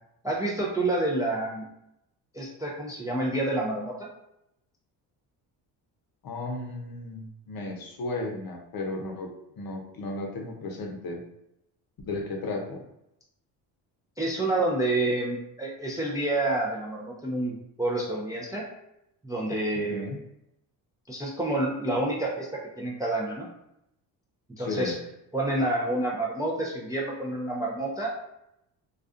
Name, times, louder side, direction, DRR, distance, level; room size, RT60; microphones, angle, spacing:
voice 1, 0.2-1.7 2.3-4.1 14.2-18.6 19.2-20.1 21.1-23.5 24.6-24.9 25.3-28.1, right 2 dB, 10° right, -3 dB, 0.4 m, -28 dB
voice 2, 6.2-9.3 9.6-11.2 12.1-12.8 19.7-20.2 24.6-24.9, left 2 dB, 50° left, 1 dB, 0.7 m, -34 dB
2.4 x 2.3 x 2.5 m, 0.82 s
supercardioid pair, 60°, 47 cm